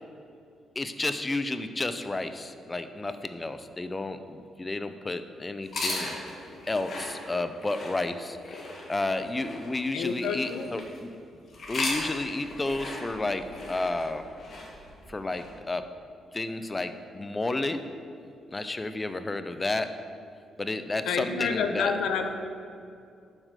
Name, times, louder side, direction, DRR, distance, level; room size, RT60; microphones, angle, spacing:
voice 1, 0.8-6.2 6.7-8.6 8.9-11.1 11.7-14.2 15.1-15.8 16.3-17.8 18.5-19.9 20.6-21.9, left 2 dB, 20° left, 10 dB, 0.5 m, -31 dB
sound 1, 5.6-11.0 11.5-15.5, left 2 dB, 50° left, 1.7 m, -38 dB
voice 2, 9.9-10.7 21.0-22.3, left 5 dB, 85° left, 6 dB, 0.6 m, -28 dB
7.4 x 4.8 x 6.6 m, 2.5 s
cardioid pair, 105°, 0 cm